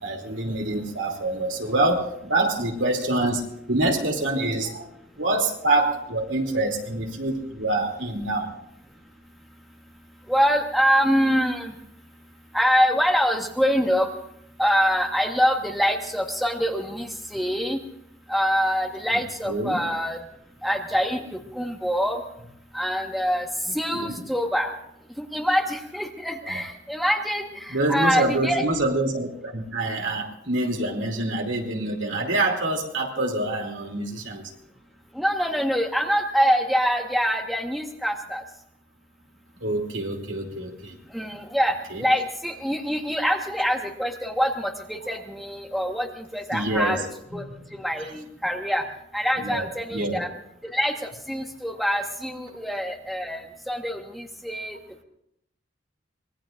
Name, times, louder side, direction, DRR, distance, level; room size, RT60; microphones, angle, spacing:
voice 1, 0.0-3.4 3.7-4.9 5.2-8.6 19.5-19.8 23.9-24.2 26.4-26.6 27.7-34.5 39.6-41.0 41.9-42.0 46.5-47.0 47.3-47.7 49.4-50.2, right 2 dB, 85° right, 1 dB, 2.9 m, -26 dB
voice 2, 10.3-11.7 12.5-14.1 14.6-17.8 18.3-20.2 20.6-22.2 22.7-23.5 23.7-24.7 25.2-28.6 35.1-38.4 41.1-47.0 47.3-47.4 47.7-48.8 49.1-50.3 50.7-54.8, equal, ahead, 2 dB, 1.4 m, -25 dB
24.5 x 20.0 x 2.6 m, 0.77 s
head